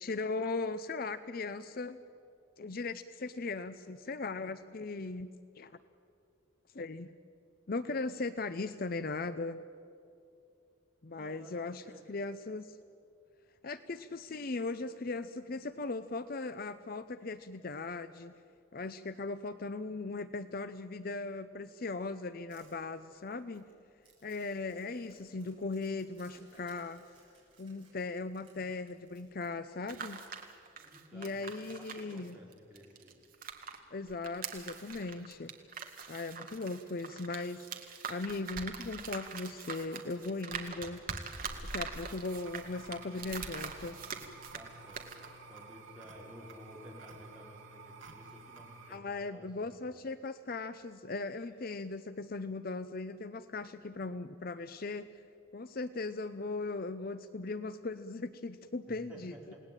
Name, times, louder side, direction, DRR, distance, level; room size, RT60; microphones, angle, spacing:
voice 1, 0.0-2.0 2.6-5.3 5.6-5.7 6.7-7.1 7.7-9.6 11.0-12.8 13.6-18.3 18.7-23.7 24.2-27.0 27.6-30.2 31.1-32.4 33.9-35.5 36.1-37.7 38.1-41.0 41.7-44.0 48.9-55.2 55.5-59.5, left 3 dB, 45° left, 12 dB, 0.6 m, -38 dB
voice 2, 11.1-12.2 30.7-33.1 44.5-49.9 51.3-51.5 58.9-59.6, equal, 5° right, -4 dB, 5.3 m, -54 dB
Crumpling crinkling, 22.5-30.2, right 3 dB, 25° right, 7.1 m, -65 dB
sound 1, 29.7-33.8 34.1-44.7 44.9-45.3, right 5 dB, 45° right, 2.0 m, -43 dB
sound 2, 42.3-49.0, right 4 dB, 65° right, 2.4 m, -52 dB
29.0 x 18.5 x 9.0 m, 2.6 s
head